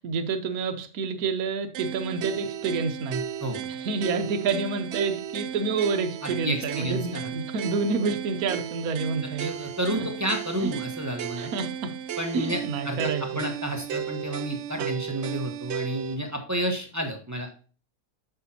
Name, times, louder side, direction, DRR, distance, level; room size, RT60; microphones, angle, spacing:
voice 1, 0.0-3.2 3.6-9.5 9.9-10.1 10.6-10.7 11.4-11.9 12.3-13.2 14.8-14.9, right 4 dB, 65° right, 7 dB, 1.3 m, -28 dB
sound 1, 1.7-16.2, right 9 dB, 85° right, 0.6 m, -34 dB
voice 2, 6.4-7.2 9.2-11.5 12.2-12.6 12.8-17.5, right 1 dB, 10° right, 3 dB, 1.1 m, -31 dB
8.1 x 6.6 x 2.9 m, 0.39 s
omnidirectional pair, 1.8 m